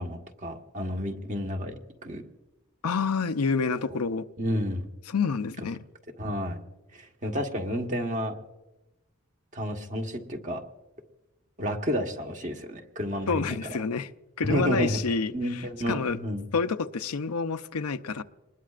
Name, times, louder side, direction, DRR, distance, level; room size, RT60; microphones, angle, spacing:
voice 1, 0.0-1.7 2.0-2.2 4.4-4.9 6.2-6.6 6.9-8.3 9.5-10.6 11.6-13.8 14.4-15.0 15.3-16.4, equal, 35° right, 3 dB, 1.4 m, -31 dB
voice 2, 2.8-4.3 5.1-5.8 13.3-14.1 14.4-16.2 16.5-18.2, left 5 dB, 90° left, 10 dB, 0.6 m, -28 dB
26.0 x 20.5 x 2.5 m, 1.0 s
head